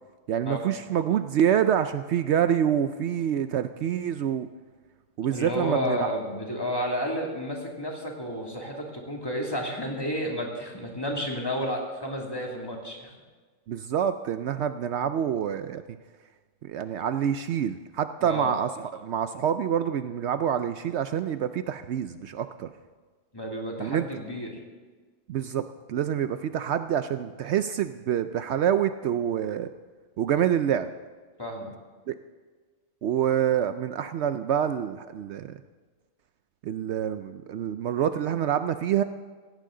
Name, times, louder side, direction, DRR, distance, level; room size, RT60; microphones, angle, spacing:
voice 1, 0.3-4.5 5.2-6.1 13.7-15.8 16.6-22.7 23.8-24.1 25.3-29.7 30.2-30.9 32.1-32.2 33.0-35.6 36.6-39.0, right 9 dB, 70° right, 10 dB, 0.8 m, -26 dB
voice 2, 5.3-13.1 18.2-18.5 23.3-24.6 31.4-31.7, equal, 20° left, -1 dB, 2.5 m, -31 dB
17.0 x 16.5 x 3.8 m, 1.4 s
omnidirectional pair, 1.3 m